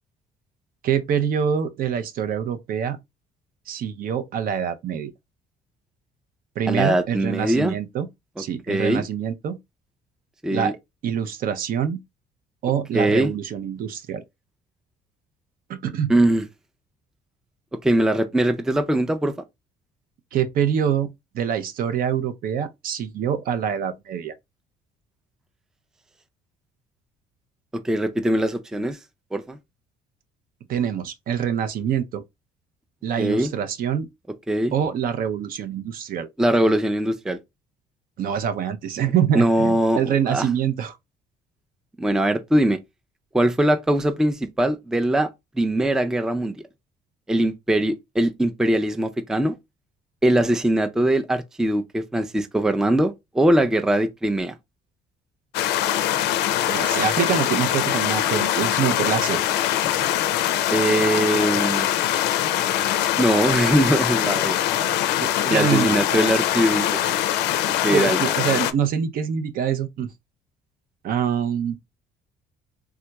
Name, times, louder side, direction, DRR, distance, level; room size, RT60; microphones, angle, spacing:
voice 1, 0.8-3.0 3.7-5.1 6.6-8.1 8.4-9.6 10.5-10.7 11.0-12.0 12.6-14.2 15.7-16.1 20.3-24.3 30.7-32.2 33.0-34.1 34.7-36.3 38.2-41.0 56.7-59.4 65.2-66.3 67.9-70.1 71.0-71.8, right 8 dB, 60° right, 0.5 m, -25 dB
voice 2, 6.7-7.7 8.7-9.0 10.4-10.7 12.9-13.3 16.1-16.5 17.8-19.3 27.8-29.0 29.3-29.6 33.2-33.5 34.5-34.7 36.4-37.4 39.3-40.5 42.0-42.8 43.3-45.3 45.6-46.6 47.3-49.6 50.2-54.5 60.7-61.9 63.2-64.6 65.4-67.0 67.7-68.2, right 1 dB, 5° right, 0.3 m, -21 dB
sound 1, 55.5-68.7, left 12 dB, 85° left, 0.4 m, -23 dB
3.5 x 2.9 x 2.2 m
cardioid pair, 110°, 17 cm